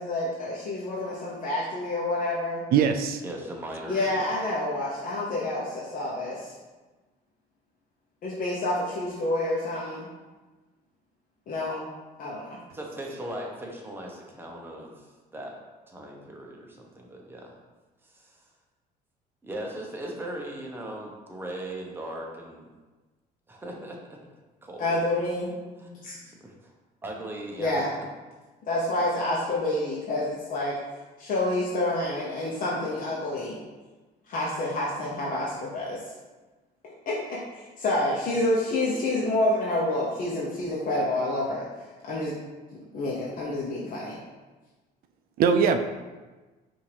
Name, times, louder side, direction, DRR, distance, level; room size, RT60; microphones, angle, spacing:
voice 1, 0.0-2.6 3.9-6.5 8.2-10.1 11.5-11.9 12.2-12.6 24.8-25.5 26.0-26.2 27.6-27.9 28.7-30.8 31.2-33.6 34.3-36.0 36.8-41.6 42.0-42.3 42.9-44.2, left 1 dB, 55° left, -6 dB, 0.8 m, -28 dB
voice 2, 2.7-3.2 45.4-45.8, right 6 dB, 65° right, 8 dB, 0.4 m, -21 dB
voice 3, 3.2-4.3 12.7-15.1 15.3-15.5 15.9-17.5 18.0-18.4 19.4-22.7 23.5-24.2 24.6-25.0 25.8-26.7 27.0-27.8, right 1 dB, 15° right, -1 dB, 0.9 m, -38 dB
5.5 x 2.7 x 3.3 m, 1.2 s
cardioid pair, 110°, 17 cm